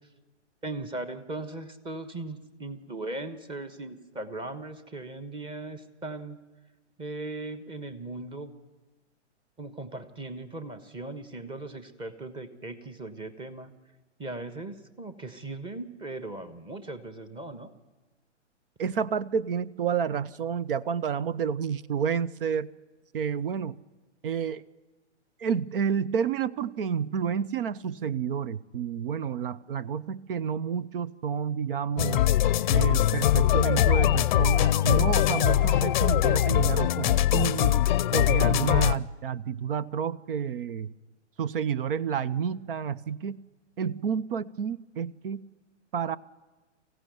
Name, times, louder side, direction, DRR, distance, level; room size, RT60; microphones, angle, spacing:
voice 1, 0.6-6.4 7.0-8.5 9.6-13.7 14.2-17.7, right 2 dB, 15° right, 11 dB, 1.2 m, -38 dB
voice 2, 18.8-22.7 23.1-23.8 24.2-24.6 25.4-32.2 32.7-37.8 38.1-40.9 41.4-43.4 43.8-45.4 45.9-46.2, right 7 dB, 50° right, 19 dB, 0.7 m, -30 dB
sound 1, 32.0-39.0, left 12 dB, 40° left, 0.7 m, -22 dB
24.0 x 15.5 x 9.3 m, 1.2 s
hypercardioid pair, 130°, 36 cm